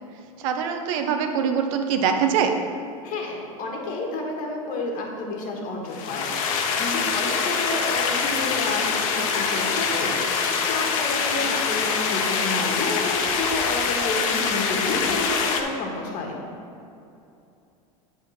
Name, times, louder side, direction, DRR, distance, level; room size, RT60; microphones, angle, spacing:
voice 1, 0.4-2.6 11.4-11.5, right 7 dB, 65° right, 5 dB, 0.8 m, -23 dB
voice 2, 3.0-16.4, left 2 dB, 50° left, 0 dB, 1.6 m, -30 dB
sound 1, 5.9-15.6, left 5 dB, 70° left, 0.8 m, -24 dB
8.0 x 3.7 x 5.8 m, 2.7 s
hypercardioid pair, 100°, 18 cm